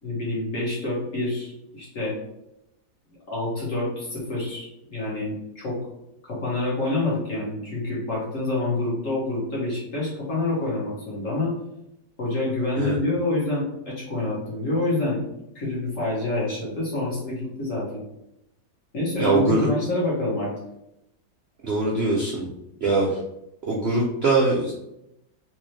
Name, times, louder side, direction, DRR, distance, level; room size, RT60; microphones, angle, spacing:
voice 1, 0.0-2.1 3.3-5.8 6.2-11.5 12.2-15.2 15.5-18.0 18.9-20.5, left 2 dB, 50° left, -6 dB, 1.7 m, -27 dB
voice 2, 19.2-19.7 21.6-22.5 22.8-23.2 23.7-24.7, right 3 dB, 65° right, -2 dB, 0.6 m, -22 dB
3.5 x 3.0 x 3.2 m, 0.84 s
omnidirectional pair, 1.9 m